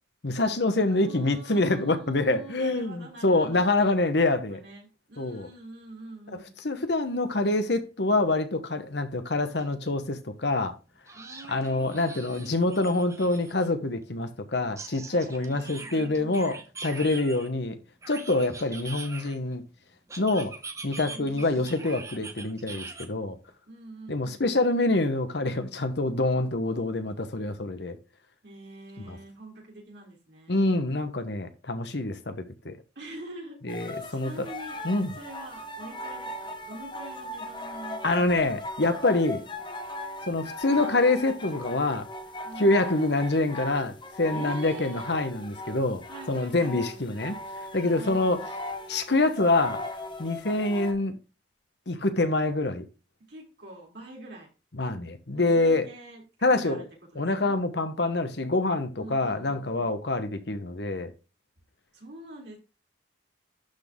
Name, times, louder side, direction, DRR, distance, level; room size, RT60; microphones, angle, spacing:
voice 1, 0.2-4.6 5.2-5.5 6.6-10.8 11.5-17.8 18.1-19.6 20.2-20.5 20.8-23.4 24.1-28.0 29.1-29.2 30.5-32.8 33.6-34.5 34.8-35.1 38.0-39.4 40.3-42.1 42.6-46.0 46.3-47.4 47.7-48.4 48.9-49.8 50.2-51.2 51.9-52.8 54.7-55.9 56.4-56.8 57.2-61.1, left 2 dB, 60° left, 1.1 m, -26 dB
voice 2, 0.8-3.7 4.2-6.6 11.1-12.8 15.1-16.6 21.0-22.4 23.7-24.5 28.4-30.6 33.0-34.8 35.2-39.6 42.4-43.1 44.3-45.1 46.1-47.1 47.8-48.5 53.3-54.5 55.3-56.9 57.1-57.6 59.0-60.0 61.9-62.6, right 2 dB, 65° right, 3.4 m, -46 dB
sound 1, 9.6-9.7 10.0-10.1 11.1-13.7 14.8-17.5 18.0-19.5 20.1-23.1, right 3 dB, 15° right, 0.8 m, -42 dB
sound 2, 33.7-50.9, left 1 dB, 25° left, 0.8 m, -38 dB
11.5 x 4.1 x 3.6 m
head